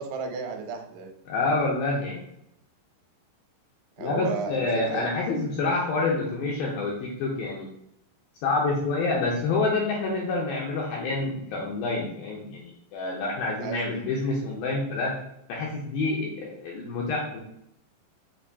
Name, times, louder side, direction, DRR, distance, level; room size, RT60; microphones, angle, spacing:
voice 1, 0.0-1.1 4.0-5.1 13.6-14.0, right 5 dB, 80° right, 4 dB, 2.7 m, -33 dB
voice 2, 1.3-2.2 4.0-7.7 8.4-15.1 15.5-17.4, left 3 dB, 80° left, -2 dB, 2.1 m, -27 dB
7.2 x 2.6 x 2.7 m, 0.77 s
omnidirectional pair, 4.8 m